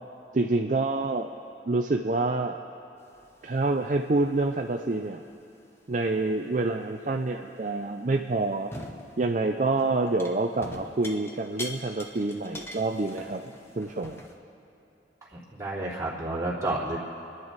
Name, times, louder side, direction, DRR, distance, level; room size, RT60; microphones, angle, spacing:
voice 1, 0.3-1.3 1.7-2.6 3.4-5.2 5.9-8.7 9.2-14.2, right 2 dB, 45° right, 3 dB, 0.5 m, -27 dB
sound 1, 3.0-3.8 4.2-4.6 5.3-5.4 8.1-8.2 8.7-9.2 9.6-14.3, left 1 dB, 15° left, 0.9 m, -43 dB
voice 2, 15.3-17.0, right 2 dB, 15° right, -7 dB, 3.0 m, -31 dB
28.5 x 10.5 x 4.0 m, 2.8 s
head